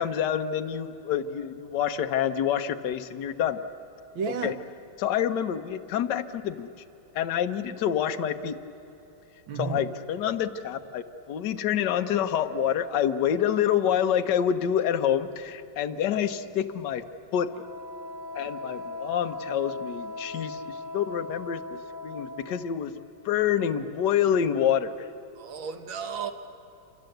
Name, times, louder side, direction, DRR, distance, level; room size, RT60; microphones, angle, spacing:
voice 1, 0.0-3.6 4.4-4.5 5.0-6.7 7.1-8.6 9.6-17.0 17.3-17.5 18.3-21.6 22.0-22.9 23.2-25.1, left 9 dB, 65° left, 7 dB, 1.5 m, -27 dB
voice 2, 4.1-4.6 9.5-9.8 25.4-26.3, right 6 dB, 85° right, 7 dB, 2.2 m, -32 dB
Wind instrument woodwind instrument, 17.5-22.7, left 2 dB, 65° right, 3.8 m, -39 dB
28.0 x 26.5 x 7.9 m, 2.9 s
omnidirectional pair, 2.1 m